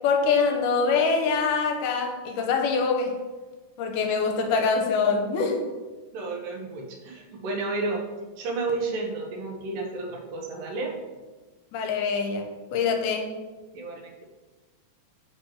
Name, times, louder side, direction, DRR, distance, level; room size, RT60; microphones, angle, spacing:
voice 1, 0.0-3.1 3.8-5.6 11.7-13.3, left 5 dB, 85° left, 4 dB, 2.1 m, -24 dB
voice 2, 6.1-8.0 8.4-11.0 13.7-14.2, right 3 dB, 85° right, 0 dB, 2.7 m, -31 dB
6.5 x 6.1 x 3.0 m, 1.2 s
omnidirectional pair, 3.8 m